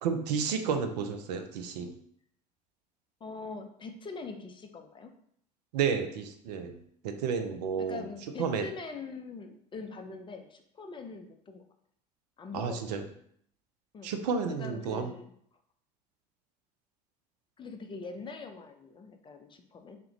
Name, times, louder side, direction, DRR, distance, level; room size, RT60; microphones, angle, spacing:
voice 1, 0.0-1.9 5.7-8.1 8.4-8.7 12.5-13.0 14.0-15.1, right 6 dB, 75° right, 7 dB, 0.4 m, -31 dB
voice 2, 3.2-5.1 7.8-11.6 12.4-12.8 13.9-14.1 14.6-15.3 17.6-20.0, left 4 dB, 25° left, 5 dB, 0.4 m, -43 dB
3.4 x 2.2 x 3.1 m, 0.66 s
hypercardioid pair, 70°, 21 cm